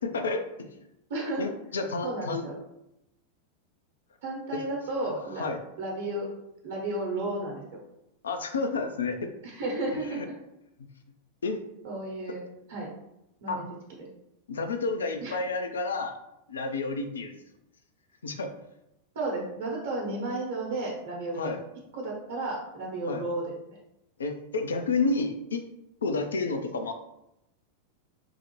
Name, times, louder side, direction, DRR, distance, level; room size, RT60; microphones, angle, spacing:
voice 1, 0.1-0.7 1.4-2.5 4.5-4.6 5.0-5.6 8.2-9.3 10.1-10.3 11.4-11.6 13.5-13.6 14.5-16.2 16.5-17.4 18.2-18.6 21.4-21.6 23.0-23.2 24.2-25.6 26.0-26.9, left 3 dB, 70° left, 6 dB, 0.4 m, -30 dB
voice 2, 1.1-1.5 2.0-2.6 4.2-5.4 5.8-6.3 6.6-7.8 9.4-10.3 11.8-12.4 12.7-12.9 13.4-13.6 14.0-14.1 15.2-15.4 19.1-21.5 21.9-23.8, right 2 dB, 55° right, -1 dB, 0.9 m, -33 dB
3.8 x 2.1 x 3.0 m, 0.85 s
figure-of-eight pair, 90°, 0 cm